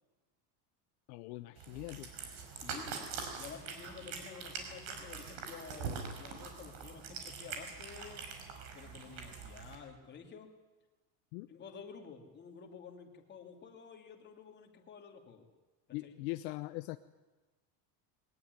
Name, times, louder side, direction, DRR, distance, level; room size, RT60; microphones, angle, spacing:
voice 1, 1.1-2.1 11.3-11.5 15.9-17.0, left 19 dB, 65° left, 11 dB, 0.9 m, -41 dB
Cat, 1.6-9.8, right 5 dB, 55° right, 5.3 m, -44 dB
voice 2, 2.5-3.1 3.4-8.3 8.7-10.5 11.5-15.5 16.0-16.2, left 6 dB, 20° left, 3 dB, 2.8 m, -51 dB
22.0 x 19.5 x 9.7 m, 1.2 s
cardioid pair, 170°, 49 cm